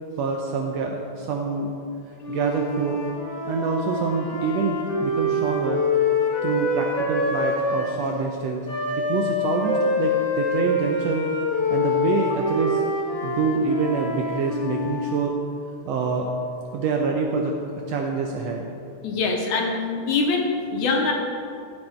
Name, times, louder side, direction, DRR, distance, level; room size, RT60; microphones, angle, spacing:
voice 1, 0.2-1.7 2.3-3.0 3.4-5.8 6.4-8.7 9.0-11.3 11.7-12.8 13.2-15.3 15.8-16.3 16.7-18.7, right 4 dB, 75° right, 2 dB, 1.6 m, -26 dB
Wind instrument woodwind instrument, 2.2-8.0 8.6-15.1, left 2 dB, 40° left, 1.9 m, -25 dB
voice 2, 19.0-21.1, left 4 dB, 75° left, 2 dB, 2.4 m, -23 dB
15.0 x 6.2 x 4.4 m, 2.4 s
omnidirectional pair, 3.6 m